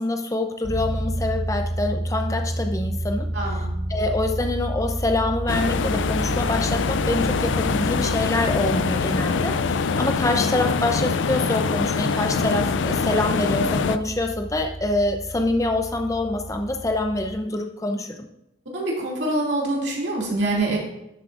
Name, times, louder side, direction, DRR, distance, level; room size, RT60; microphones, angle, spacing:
voice 1, 0.0-3.3 3.9-18.3, left 2 dB, 15° left, 4 dB, 0.6 m, -25 dB
sound 1, 0.6-17.4, right 1 dB, 15° right, 2.7 m, -31 dB
voice 2, 3.3-3.7 18.7-20.8, right 2 dB, 65° right, -3 dB, 2.6 m, -25 dB
sound 2, 5.5-14.0, left 5 dB, 80° left, 0.4 m, -24 dB
11.0 x 7.2 x 2.5 m, 0.86 s
head